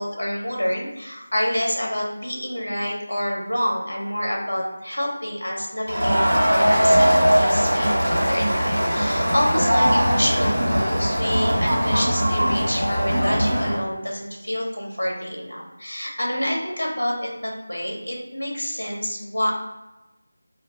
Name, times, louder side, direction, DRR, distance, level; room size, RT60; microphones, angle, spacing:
voice 1, 0.0-6.2 6.5-19.5, equal, 65° left, -2 dB, 0.9 m, -27 dB
Crowd, 5.9-13.8, equal, 60° right, 1.3 m, -20 dB
2.3 x 2.2 x 2.7 m, 1.0 s
figure-of-eight pair, 165°, 0 cm